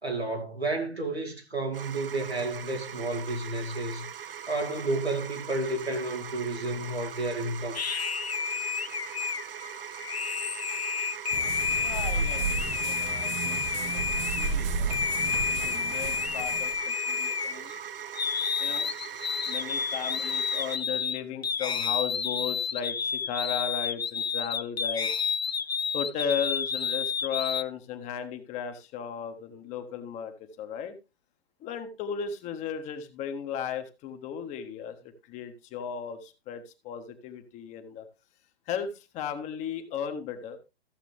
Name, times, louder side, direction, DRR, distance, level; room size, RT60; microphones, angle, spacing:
voice 1, 0.0-7.8, right 2 dB, 90° right, 2.5 m, -31 dB
sound 1, 1.7-20.8, right 8 dB, 60° right, 0.7 m, -41 dB
sound 2, 7.7-14.5 14.9-17.8 18.1-27.6, left 6 dB, 80° left, 0.7 m, -30 dB
sound 3, 11.3-16.8, right 5 dB, 30° right, 0.8 m, -33 dB
voice 2, 11.7-14.9 15.5-17.7 18.6-18.9 19.5-25.1 25.9-31.0 31.6-38.0 38.7-40.6, left 7 dB, 20° left, 1.2 m, -36 dB
14.5 x 7.2 x 3.2 m
figure-of-eight pair, 115°, 31 cm